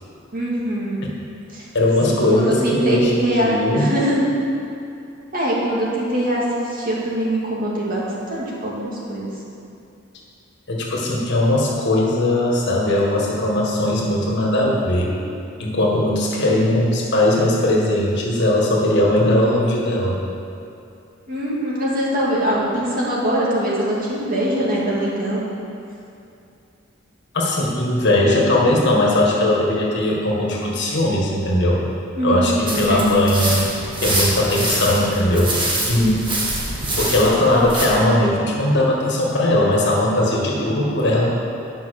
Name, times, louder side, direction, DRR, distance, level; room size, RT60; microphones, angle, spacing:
voice 1, 0.3-1.0 1.5-1.7 2.1-4.3 5.3-9.3 16.5-16.6 21.3-25.4 32.2-33.2, right 1 dB, 45° right, -6 dB, 2.3 m, -22 dB
voice 2, 1.7-3.9 10.7-15.1 15.6-20.2 27.3-31.8 32.2-33.6 34.0-35.6 35.9-36.3 37.0-41.3, left 1 dB, 60° left, -3 dB, 1.8 m, -19 dB
sound 1, 32.7-37.9, right 1 dB, 25° right, 1.6 m, -25 dB
10.0 x 5.6 x 6.6 m, 2.7 s
head